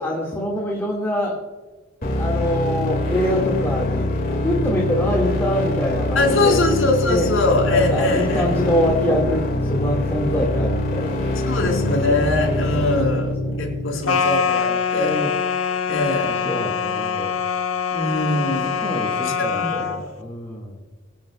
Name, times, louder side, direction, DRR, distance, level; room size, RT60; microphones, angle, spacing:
voice 1, 0.0-1.4 2.1-4.1 4.4-6.6 7.1-7.3 7.7-11.9 12.7-12.9 13.4-13.8 15.0-15.3 16.2-17.3 18.8-20.8, equal, 10° left, -4 dB, 2.0 m, -25 dB
sound 1, 2.0-14.0, left 1 dB, 45° left, 2.2 m, -24 dB
voice 2, 6.2-8.5 11.5-15.2 15.9-16.5 17.9-18.8 19.2-19.7, left 2 dB, 70° left, -2 dB, 4.2 m, -22 dB
sound 2, 14.1-20.0, left 7 dB, 85° left, 1.0 m, -24 dB
24.5 x 9.0 x 2.3 m, 1.3 s
head